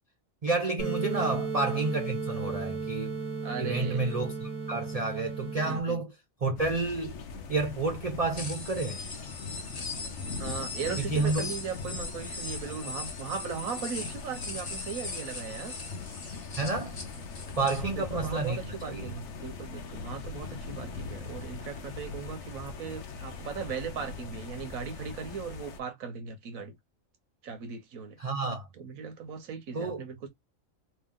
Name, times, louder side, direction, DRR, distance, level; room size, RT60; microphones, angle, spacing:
voice 1, 0.4-3.2 3.6-6.1 6.4-7.2 7.5-9.0 11.0-11.5 16.6-17.0 17.6-18.6 18.9-19.1 28.2-28.7 29.7-30.0, right 3 dB, 45° right, 0.5 m, -30 dB
sound 1, 0.8-5.8, right 4 dB, 25° right, 1.1 m, -34 dB
voice 2, 1.1-1.4 3.4-4.0 5.7-6.0 10.4-15.7 17.6-26.7 27.4-28.2 28.8-30.3, right 6 dB, 85° right, 1.3 m, -38 dB
sound 2, 6.6-25.8, left 4 dB, 65° left, 1.0 m, -41 dB
sound 3, 8.4-17.8, left 3 dB, 35° left, 0.8 m, -40 dB
3.0 x 2.8 x 3.6 m
omnidirectional pair, 1.4 m